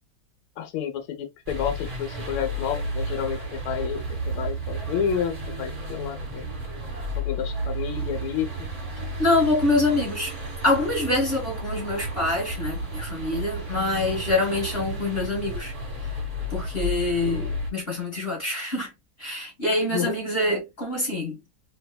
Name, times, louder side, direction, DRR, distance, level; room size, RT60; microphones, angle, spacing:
voice 1, 0.6-6.5 7.2-8.7 19.9-20.2, left 8 dB, 90° left, 1.6 m, -30 dB
sound 1, 1.5-17.7, right 1 dB, 30° right, 1.0 m, -32 dB
voice 2, 9.2-10.3 10.6-15.7 16.0-16.1 16.5-18.9 19.2-21.4, left 2 dB, 30° left, 1.3 m, -25 dB
3.3 x 2.9 x 2.2 m
omnidirectional pair, 2.2 m